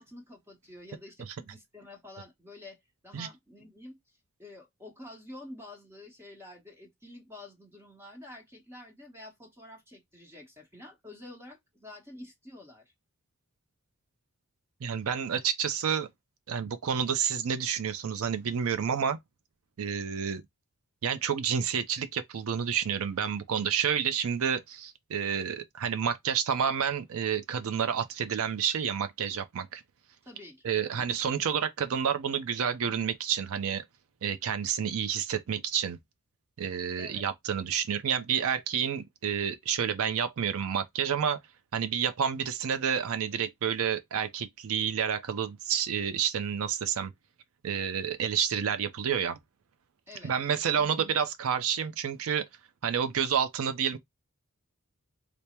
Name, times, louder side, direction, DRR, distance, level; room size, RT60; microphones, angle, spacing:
voice 1, 0.0-2.8 3.0-4.0 4.4-12.9 30.2-31.0 37.0-37.3 50.1-50.3, left 1 dB, 10° right, 1.0 m, -48 dB
voice 2, 14.8-16.1 16.5-19.2 19.8-20.4 21.0-29.8 30.6-33.8 34.2-36.0 36.6-41.4 41.7-47.1 47.6-49.4 50.2-52.5 52.8-54.0, right 7 dB, 65° right, 0.5 m, -29 dB
3.3 x 2.0 x 4.2 m
head